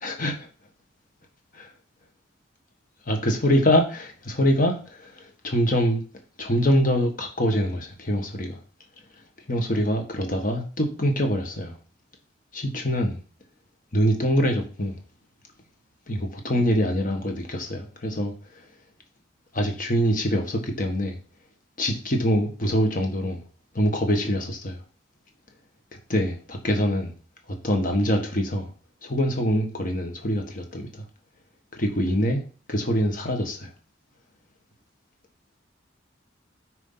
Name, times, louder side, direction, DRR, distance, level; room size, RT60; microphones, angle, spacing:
voice 1, 0.0-0.5 1.5-1.7 3.1-6.0 6.4-8.6 9.5-11.7 12.5-13.2 13.9-15.0 16.1-18.7 19.5-21.2 21.8-23.4 23.7-24.8 26.1-27.1 27.5-28.7 29.0-31.0 31.7-32.4 32.7-33.7, equal, 45° left, 1.6 m, -24 dB
6.3 x 4.7 x 5.7 m
head